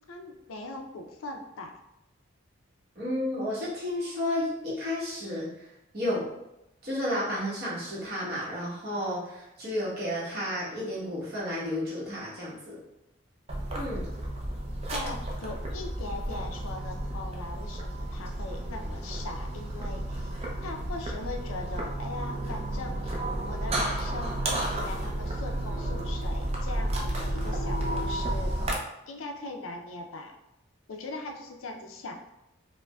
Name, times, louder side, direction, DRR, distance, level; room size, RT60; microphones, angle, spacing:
voice 1, 0.1-1.7 14.9-20.3 20.6-28.6 29.1-30.4 30.9-32.3, left 2 dB, 80° left, 3 dB, 0.5 m, -40 dB
voice 2, 2.9-6.3 6.8-12.8 13.7-14.1, left 1 dB, 50° right, -7 dB, 1.2 m, -32 dB
sound 1, 13.5-28.8, right 1 dB, 30° right, 0.4 m, -32 dB
4.7 x 2.1 x 2.3 m, 0.88 s
head